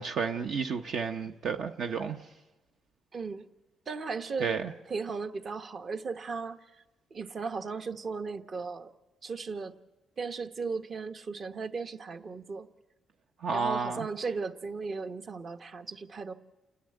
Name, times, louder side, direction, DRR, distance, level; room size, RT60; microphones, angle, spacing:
voice 1, 0.0-2.2 4.4-4.7 13.4-14.1, right 5 dB, 65° right, 0.8 m, -31 dB
voice 2, 3.1-3.4 3.9-4.5 4.9-6.8 7.1-8.9 9.2-9.7 10.2-12.7 13.5-16.3, right 4 dB, 45° right, 1.1 m, -36 dB
29.0 x 10.0 x 9.0 m
cardioid pair, 90°, 0 cm